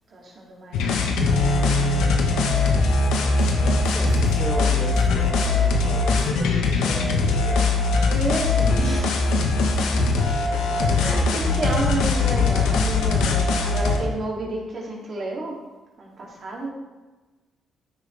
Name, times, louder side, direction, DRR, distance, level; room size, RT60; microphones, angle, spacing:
voice 1, 0.1-1.0 2.6-3.2 8.1-9.3 9.8-9.9 11.0-15.6 16.0-16.7, right 2 dB, 50° right, -3 dB, 2.9 m, -31 dB
sound 1, 0.7-14.0, left 3 dB, 90° left, 1.3 m, -21 dB
Bass guitar, 1.2-5.6 6.3-7.4, right 2 dB, 35° left, 2.7 m, -31 dB
voice 2, 3.1-8.1 9.9-11.1, equal, 10° left, -2 dB, 2.2 m, -36 dB
13.5 x 6.3 x 3.5 m, 1.2 s
cardioid pair, 90°, 0 cm